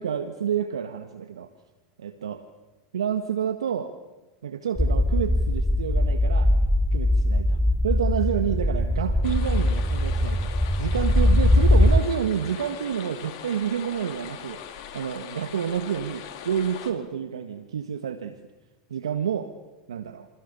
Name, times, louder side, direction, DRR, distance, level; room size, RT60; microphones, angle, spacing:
voice 1, 0.0-1.5 2.0-2.4 2.9-3.9 4.4-6.5 6.9-10.5 10.8-14.6 14.9-18.4 18.9-19.5 19.9-20.3, right 8 dB, 85° right, 8 dB, 1.6 m, -29 dB
sound 1, 4.8-12.0, left 1 dB, ahead, 1.1 m, -21 dB
sound 2, 9.2-16.9, left 9 dB, 55° left, 4.4 m, -40 dB
28.5 x 25.0 x 6.9 m, 1.1 s
hypercardioid pair, 100°, 3 cm